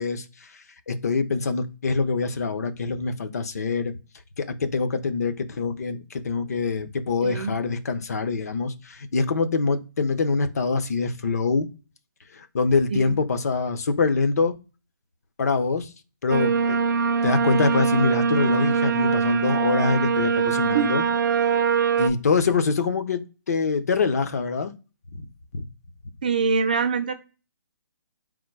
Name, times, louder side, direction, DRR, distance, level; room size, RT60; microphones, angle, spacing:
voice 1, 0.0-3.9 4.4-11.7 12.3-14.5 15.4-15.9 16.2-16.8 17.2-21.0 22.0-24.7 25.1-25.2 25.5-25.6, left 4 dB, 45° left, 0.7 m, -25 dB
voice 2, 7.2-7.6 12.9-13.2 20.7-20.9 26.2-27.1, right 5 dB, 20° right, 0.4 m, -24 dB
sound 1, 16.3-22.1, right 6 dB, 55° right, 0.6 m, -22 dB
3.7 x 2.6 x 4.6 m
hypercardioid pair, 175°, 12 cm